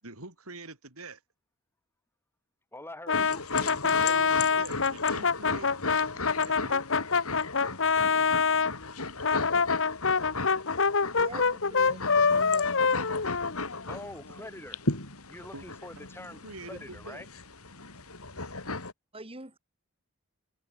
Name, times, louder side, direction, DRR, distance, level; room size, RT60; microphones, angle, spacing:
voice 1, 0.0-1.2 3.8-6.8 15.5-15.6 16.3-17.2, right 2 dB, 75° right, 7.9 m, -45 dB
voice 2, 2.7-4.1 13.9-14.8 15.3-16.4 16.7-17.3, left 1 dB, 10° left, 4.2 m, -44 dB
sound 1, 3.1-18.9, left 3 dB, 80° left, 5.2 m, -36 dB
Brass instrument, 3.1-8.7 9.2-14.0, left 5 dB, 60° left, 1.3 m, -25 dB
voice 3, 11.1-12.7 19.1-19.6, right 2 dB, 25° right, 3.9 m, -44 dB
open air
head